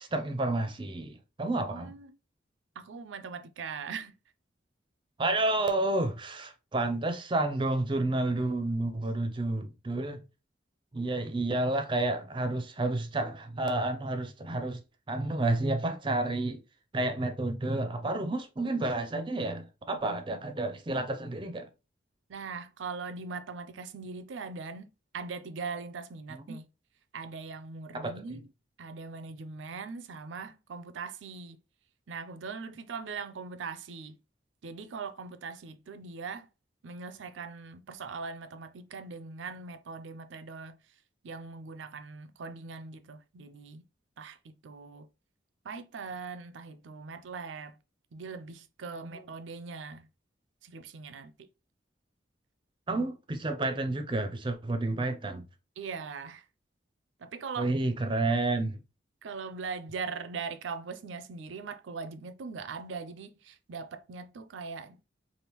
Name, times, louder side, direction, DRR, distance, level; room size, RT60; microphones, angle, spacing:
voice 1, 0.0-1.9 5.2-10.2 10.9-14.8 15.1-16.6 16.9-21.7 26.3-26.6 27.9-28.1 49.0-49.2 52.9-55.4 57.6-58.8, right 2 dB, 25° right, 0.5 m, -30 dB
voice 2, 1.6-2.2 2.8-4.1 22.3-26.7 27.1-28.5 28.8-31.6 32.1-34.2 34.6-36.5 36.8-40.8 41.2-43.9 44.2-45.1 45.6-47.8 48.1-50.1 50.6-51.5 55.8-56.4 57.2-57.7 59.2-65.1, right 5 dB, 85° right, 0.5 m, -41 dB
3.4 x 2.5 x 2.9 m
head